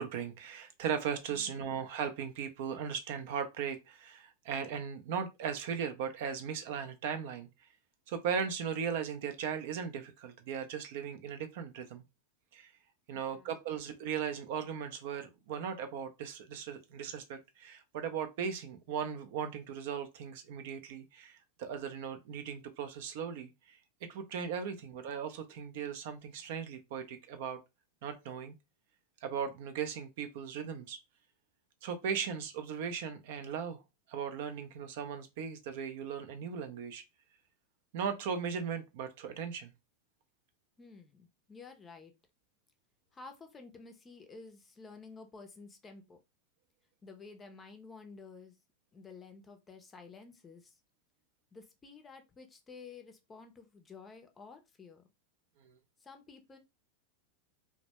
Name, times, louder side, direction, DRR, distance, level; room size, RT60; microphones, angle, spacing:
voice 1, 0.0-7.5 8.1-12.0 12.5-12.7 13.1-23.8 24.1-27.6 28.0-28.5 29.2-31.0 31.8-33.8 34.1-37.0 37.9-39.7 55.6-55.8, right 7 dB, 65° right, 0.4 m, -38 dB
voice 2, 13.1-13.5 24.7-24.9 40.8-42.1 43.1-46.2 47.0-48.6 48.9-50.8 51.5-55.1 56.0-56.6, left 4 dB, 20° left, 0.5 m, -52 dB
2.1 x 2.1 x 2.8 m
hypercardioid pair, 115°, 0 cm